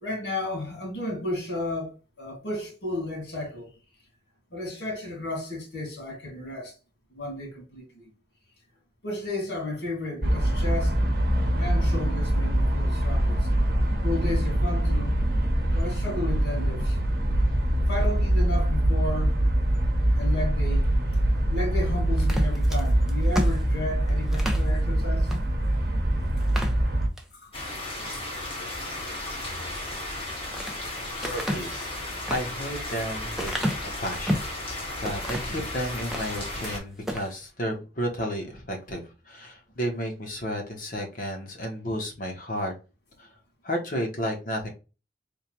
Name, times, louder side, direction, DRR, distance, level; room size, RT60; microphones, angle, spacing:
voice 1, 0.0-3.7 4.5-6.7 7.1-8.0 9.0-11.0 11.6-13.5 14.0-15.1 15.7-17.0 17.9-19.4 20.2-20.9 21.5-25.3 27.4-27.5 32.1-32.2, left 2 dB, 80° left, 1.9 m, -33 dB
sound 1, 10.2-27.1, right 1 dB, 60° right, 1.0 m, -24 dB
sound 2, 22.2-24.7 25.3-25.4 25.8-25.9 26.4-27.3 27.8-28.2 30.0-30.8 31.2-34.6 35.0-35.6 36.0-36.8 37.0-37.3, equal, ahead, 0.6 m, -32 dB
sound 3, 27.5-36.8, left 1 dB, 30° left, 1.5 m, -35 dB
voice 2, 31.2-33.6 34.0-42.7 43.2-43.3 43.6-44.7, equal, 50° left, 1.2 m, -32 dB
3.6 x 2.3 x 4.5 m
head